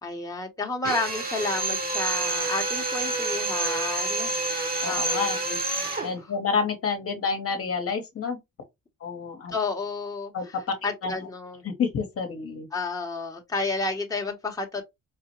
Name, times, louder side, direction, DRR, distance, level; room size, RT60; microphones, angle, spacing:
voice 1, 0.0-5.3 9.5-10.3 10.8-11.6 12.7-14.8, left 3 dB, 10° left, 0.9 m, -31 dB
Drill, 0.8-6.1, right 2 dB, 30° right, 1.0 m, -28 dB
voice 2, 4.8-5.6 6.0-8.4 9.0-9.5 10.3-11.3 11.6-12.7, left 5 dB, 50° left, 1.0 m, -29 dB
4.7 x 2.1 x 2.9 m
cardioid pair, 90°, 30 cm